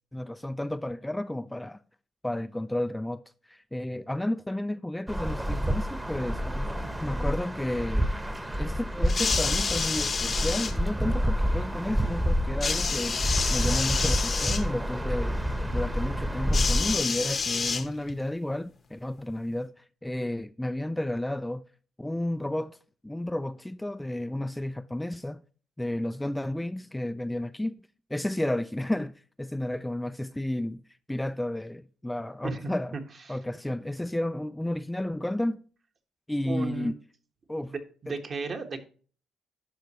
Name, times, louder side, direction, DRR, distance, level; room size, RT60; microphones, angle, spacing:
voice 1, 0.0-1.8 2.2-3.2 3.5-8.1 8.6-13.2 13.5-15.4 15.7-21.6 22.0-22.8 23.0-25.4 25.8-27.7 28.1-29.1 29.4-30.8 31.1-33.0 33.3-35.6 36.3-37.0 37.5-37.7 38.1-38.2, left 1 dB, 10° left, 0.3 m, -32 dB
sound 1, 5.1-17.0, equal, 10° right, 1.0 m, -28 dB
sound 2, 9.0-10.7 12.6-14.6 16.5-18.2 19.2-19.3, left 5 dB, 45° left, 0.8 m, -29 dB
voice 2, 32.4-33.0 33.3-33.4 36.5-36.9 37.7-38.8, right 4 dB, 45° right, 1.3 m, -35 dB
11.5 x 5.3 x 3.0 m
cardioid pair, 90°, 0 cm